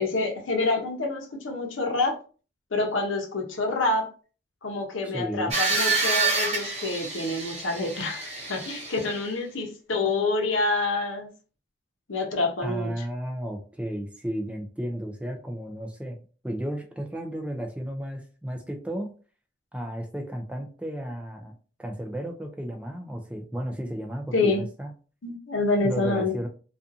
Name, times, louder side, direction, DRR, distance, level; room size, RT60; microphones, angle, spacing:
voice 1, 0.0-2.2 2.7-4.1 4.6-11.3 12.1-12.9 24.3-24.6 25.2-26.3, left 3 dB, 85° left, 2 dB, 0.7 m, -27 dB
voice 2, 5.0-5.6 12.6-16.2 16.4-19.1 19.7-21.5 21.8-24.9 25.8-26.5, equal, 5° right, 3 dB, 0.3 m, -33 dB
sound 1, 5.5-9.3, right 3 dB, 35° right, 0.7 m, -28 dB
2.5 x 2.4 x 2.6 m, 0.37 s
head